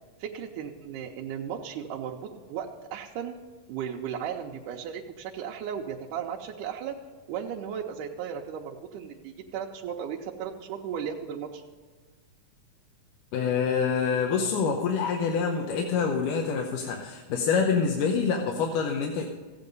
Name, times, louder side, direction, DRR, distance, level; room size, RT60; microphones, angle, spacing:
voice 1, 0.2-3.3 3.7-6.9 7.3-11.6, right 8 dB, 85° right, 0 dB, 2.3 m, -35 dB
voice 2, 13.3-19.3, left 6 dB, 85° left, 2 dB, 2.5 m, -26 dB
15.0 x 8.8 x 5.3 m, 1.4 s
omnidirectional pair, 3.6 m